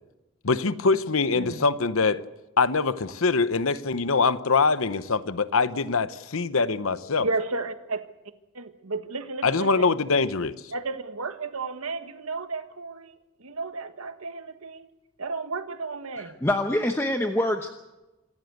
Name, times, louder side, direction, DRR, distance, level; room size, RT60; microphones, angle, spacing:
voice 1, 0.4-2.2 2.6-7.3 9.4-10.5, left 4 dB, 75° left, 13 dB, 0.9 m, -23 dB
voice 2, 1.3-1.7 7.2-8.1 8.5-9.9 10.7-14.9 15.2-16.4, right 3 dB, 90° right, 9 dB, 1.5 m, -33 dB
voice 3, 16.4-17.7, left 1 dB, 10° left, 4 dB, 0.9 m, -24 dB
26.5 x 14.5 x 8.0 m, 1.0 s
head